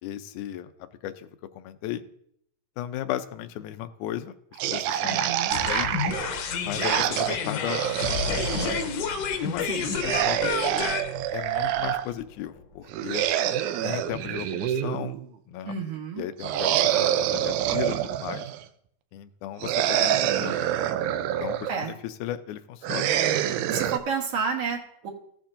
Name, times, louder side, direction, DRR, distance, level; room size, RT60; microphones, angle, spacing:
voice 1, 0.0-0.7 1.0-1.3 1.6-2.0 2.8-6.0 6.6-8.8 9.4-9.7 10.0-10.6 11.3-13.2 13.8-15.2 15.5-15.8 16.2-18.5 19.1-20.6 21.2-23.1, left 11 dB, 90° left, 10 dB, 2.1 m, -35 dB
sound 1, 4.6-8.8 9.8-12.0 12.9-15.3 16.4-18.6 19.6-21.8 22.8-24.0, right 11 dB, 85° right, 2.1 m, -26 dB
voice 2, 5.0-5.5 9.6-9.9 15.6-16.3 21.7-21.9 23.7-25.1, right 6 dB, 60° right, 0 dB, 2.0 m, -30 dB
sound 2, 5.5-12.6, left 6 dB, 70° left, 1.7 m, -30 dB
15.5 x 7.1 x 2.6 m, 0.70 s
omnidirectional pair, 3.5 m